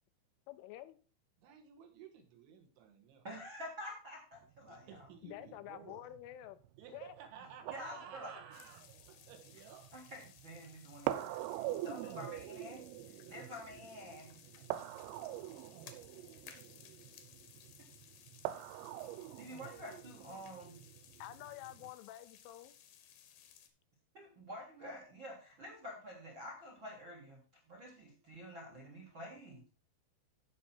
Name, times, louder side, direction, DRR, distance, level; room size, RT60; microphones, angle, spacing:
voice 1, 0.5-1.0 5.2-6.6 6.9-7.1 21.2-22.7, left 14 dB, 80° left, 12 dB, 3.1 m, -49 dB
voice 2, 1.4-3.3 4.6-6.0 6.8-9.9, right 7 dB, 70° right, 4 dB, 3.7 m, -54 dB
voice 3, 3.2-5.1 7.7-8.3 9.9-12.8 13.2-14.3 19.3-20.8 24.1-29.6, equal, 45° right, 0 dB, 1.6 m, -49 dB
sound 1, 4.4-21.9, right 14 dB, 85° right, 3.3 m, -45 dB
sound 2, 8.5-23.7, left 9 dB, 65° left, 2.7 m, -60 dB
15.0 x 5.5 x 4.4 m, 0.36 s
omnidirectional pair, 5.8 m